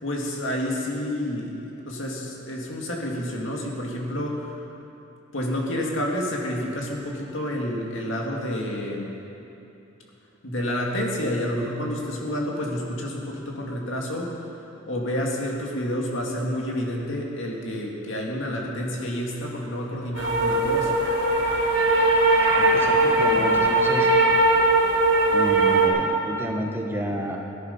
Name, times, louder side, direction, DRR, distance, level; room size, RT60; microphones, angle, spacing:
voice 1, 0.0-4.4 5.3-9.2 10.4-14.4 14.9-20.9, equal, 70° left, -1 dB, 2.2 m, -29 dB
sound 1, 20.1-25.9, right 2 dB, 60° right, 2.6 m, -20 dB
voice 2, 22.4-24.1 25.3-27.4, equal, 10° right, 0 dB, 1.1 m, -30 dB
18.0 x 10.5 x 5.4 m, 2.9 s
head